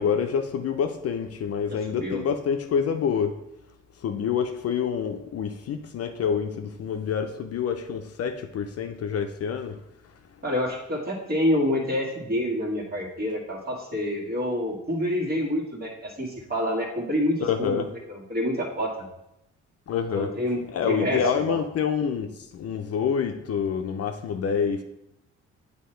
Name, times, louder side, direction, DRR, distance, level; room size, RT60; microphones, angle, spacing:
voice 1, 0.0-3.4 4.0-9.8 17.4-17.9 19.9-20.3 20.7-24.8, left 7 dB, 55° left, 6 dB, 0.5 m, -27 dB
voice 2, 10.4-19.1 20.1-21.6, equal, 30° right, -2 dB, 1.8 m, -27 dB
8.3 x 2.9 x 4.4 m, 0.85 s
cardioid pair, 90°, 30 cm